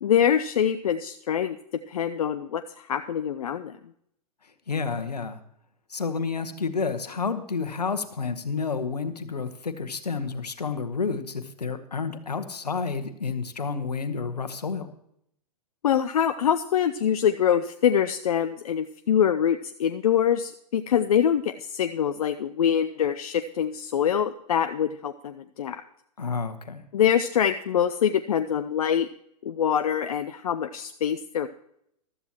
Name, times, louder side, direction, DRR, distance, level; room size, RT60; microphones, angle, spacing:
voice 1, 0.0-1.6 1.9-3.7 15.8-25.8 26.9-29.1 29.4-31.5, left 9 dB, 65° left, 8 dB, 0.6 m, -24 dB
voice 2, 4.7-5.4 5.9-14.9 26.2-26.8, left 5 dB, 80° left, 10 dB, 1.3 m, -30 dB
15.0 x 13.0 x 3.0 m, 0.72 s
figure-of-eight pair, 110°, 20 cm